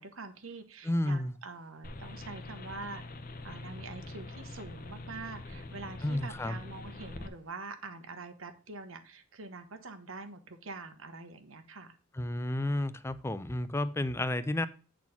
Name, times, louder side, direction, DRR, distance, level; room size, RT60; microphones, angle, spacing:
voice 1, 0.0-3.0 3.4-12.0, right 3 dB, 85° right, 1.1 m, -45 dB
voice 2, 0.8-1.3 6.0-6.6 12.2-14.7, left 1 dB, 15° left, 0.4 m, -31 dB
sound 1, 1.8-7.3, left 2 dB, 45° left, 0.7 m, -44 dB
8.9 x 4.1 x 5.8 m
head